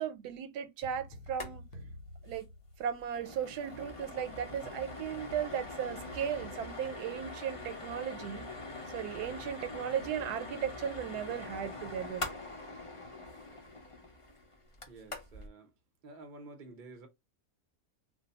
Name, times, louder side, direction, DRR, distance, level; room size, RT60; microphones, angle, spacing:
voice 1, 0.0-1.6 2.2-2.5 2.8-8.4 8.9-12.2, right 8 dB, 90° right, 1.1 m, -36 dB
sound 1, 0.8-3.3, left 1 dB, 85° left, 1.2 m, -50 dB
sound 2, 1.3-1.5 1.8-1.9 2.2-2.4 2.8-15.5, left 2 dB, 35° left, 0.5 m, -43 dB
voice 2, 14.9-15.7 16.0-17.1, right 2 dB, 45° right, 0.7 m, -50 dB
2.6 x 2.2 x 3.9 m
omnidirectional pair, 1.6 m